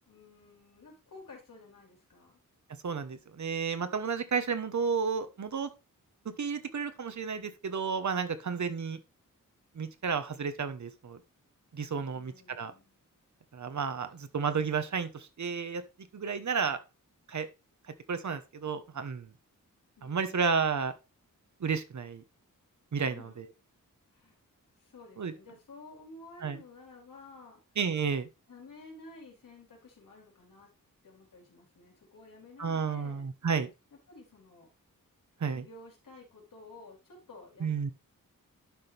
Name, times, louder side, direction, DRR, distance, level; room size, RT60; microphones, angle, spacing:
voice 1, 0.1-2.4 12.0-13.0 20.0-20.7 23.1-23.4 24.1-24.4 24.8-27.6 28.5-30.7 31.0-33.2 33.9-34.7 35.5-37.9, left 3 dB, 70° left, -1 dB, 4.1 m, -52 dB
voice 2, 2.8-5.7 6.4-9.0 9.7-11.2 11.7-12.7 13.5-15.8 16.1-16.8 17.3-17.5 18.1-19.3 20.0-20.9 21.6-22.2 22.9-23.5 25.2-25.3 26.4-26.6 27.8-28.3 32.6-33.7 35.4-35.6 37.6-37.9, right 5 dB, 60° right, 10 dB, 1.2 m, -32 dB
11.5 x 6.0 x 3.4 m, 0.27 s
wide cardioid pair, 175°, 33 cm